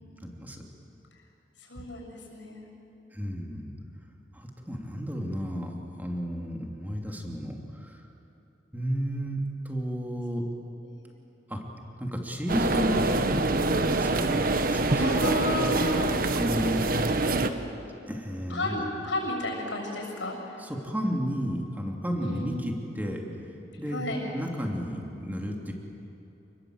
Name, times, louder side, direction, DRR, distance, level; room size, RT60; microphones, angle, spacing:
voice 1, 0.2-0.6 3.1-3.7 4.3-8.0 8.7-10.4 11.5-11.6 12.0-15.4 16.3-16.8 18.1-18.8 20.6-23.2 23.8-24.1 24.3-25.7, equal, 10° right, 1 dB, 2.8 m, -33 dB
voice 2, 1.7-2.6 10.8-10.9 15.0-16.1 18.5-20.6 22.2-22.6 23.9-24.2, left 1 dB, 85° left, 1 dB, 6.8 m, -32 dB
sound 1, 12.5-17.5, right 2 dB, 50° right, 1.2 m, -25 dB
29.0 x 21.0 x 8.0 m, 3.0 s
head